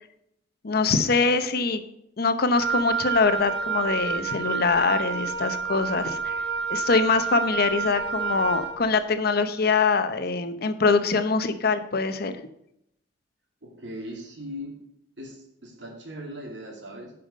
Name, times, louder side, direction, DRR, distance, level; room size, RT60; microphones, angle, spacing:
voice 1, 0.6-1.8 2.2-6.4 6.7-12.3, left 4 dB, 60° left, 10 dB, 0.8 m, -23 dB
Wind instrument woodwind instrument, 2.5-8.8, right 6 dB, 60° right, 1.6 m, -29 dB
voice 2, 13.6-14.8 15.2-17.1, equal, 80° right, 0 dB, 2.7 m, -39 dB
10.5 x 5.7 x 5.3 m, 0.76 s
head